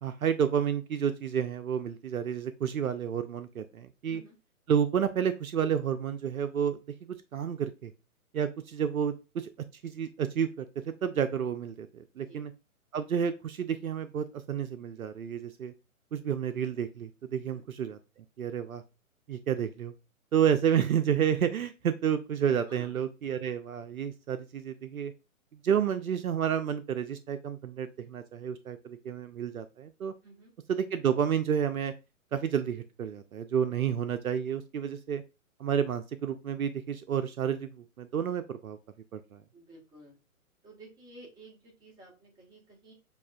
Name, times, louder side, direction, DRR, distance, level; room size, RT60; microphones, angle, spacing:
voice 1, 0.0-4.2 4.7-7.9 8.3-9.5 9.8-12.5 12.9-15.7 16.1-18.0 18.4-18.8 19.3-19.9 20.3-25.1 25.6-30.1 30.7-31.9 32.3-35.2 35.6-38.8 39.1-39.4, right 8 dB, 75° right, 11 dB, 0.6 m, -30 dB
voice 2, 4.0-4.4 12.1-12.5 17.4-17.6 22.7-23.0 30.2-30.5 39.5-40.2 40.6-42.9, right 2 dB, 10° right, -3 dB, 1.4 m, -53 dB
6.9 x 2.4 x 2.3 m, 0.29 s
figure-of-eight pair, 125°, 43 cm